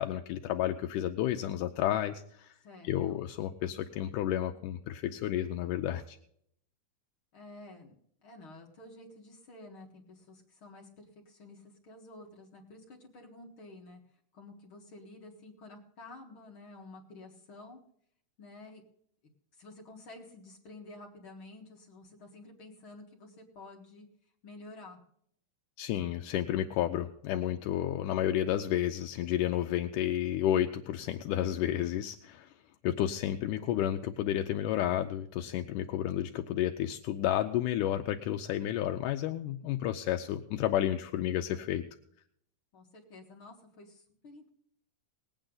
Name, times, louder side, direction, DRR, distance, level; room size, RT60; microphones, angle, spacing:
voice 1, 0.0-2.6 2.8-6.2 25.8-32.5 32.8-41.8, left 12 dB, 80° left, 6 dB, 2.1 m, -31 dB
voice 2, 2.6-3.2 7.3-8.0 8.2-14.0 14.3-17.8 18.4-18.8 19.6-24.1 24.4-25.0 42.7-44.5, left 2 dB, 50° left, 1 dB, 2.0 m, -51 dB
19.5 x 8.9 x 3.9 m, 0.67 s
omnidirectional pair, 3.7 m